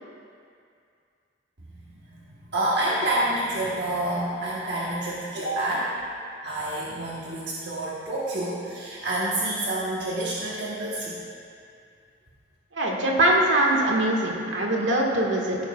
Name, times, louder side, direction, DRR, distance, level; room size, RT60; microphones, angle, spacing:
voice 1, 2.5-5.9 6.4-11.2, right 1 dB, 60° right, -7 dB, 1.2 m, -28 dB
voice 2, 12.7-15.6, right 1 dB, 75° right, -1 dB, 1.5 m, -22 dB
16.0 x 9.3 x 2.3 m, 2.3 s
head